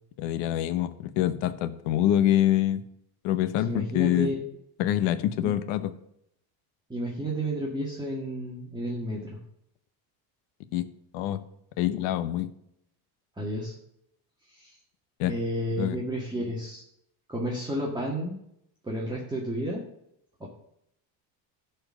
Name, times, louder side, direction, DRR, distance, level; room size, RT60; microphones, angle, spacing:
voice 1, 0.2-2.8 3.2-4.3 4.8-5.9 10.7-10.9 11.1-11.4 11.8-12.5 15.2-15.3 15.8-16.0, left 12 dB, 80° left, 13 dB, 0.9 m, -25 dB
voice 2, 3.7-4.4 5.4-5.5 6.9-9.3 13.4-13.7 14.5-14.8 15.2-16.8 17.3-18.3 18.8-19.8 20.4-20.5, equal, 10° right, -4 dB, 1.9 m, -31 dB
12.5 x 4.5 x 6.3 m, 0.75 s
cardioid pair, 110°, 43 cm